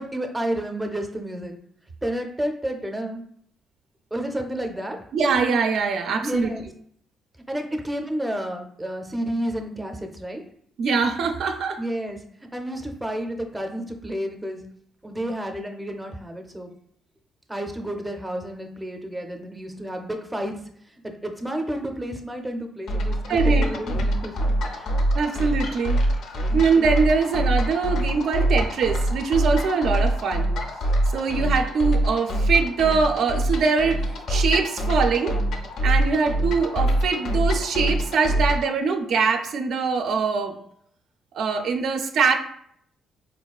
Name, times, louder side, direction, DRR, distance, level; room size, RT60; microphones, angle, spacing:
voice 1, 0.0-1.5 2.0-3.2 4.1-5.0 6.2-6.7 7.5-10.4 11.8-12.2 12.5-14.6 15.0-16.7 17.5-20.6 21.0-23.2 23.4-24.4 24.7-25.0 26.5-26.7, right 1 dB, 10° right, 3 dB, 0.5 m, -30 dB
voice 2, 5.1-6.5 10.8-11.8 23.3-23.6 25.1-26.0 26.5-30.5 31.1-34.0 34.3-35.4 35.8-40.5 41.3-42.4, right 5 dB, 70° right, 6 dB, 0.4 m, -23 dB
sound 1, 22.9-38.7, right 1 dB, 70° left, 0.4 m, -24 dB
4.2 x 2.3 x 2.3 m, 0.66 s
cardioid pair, 90°, 0 cm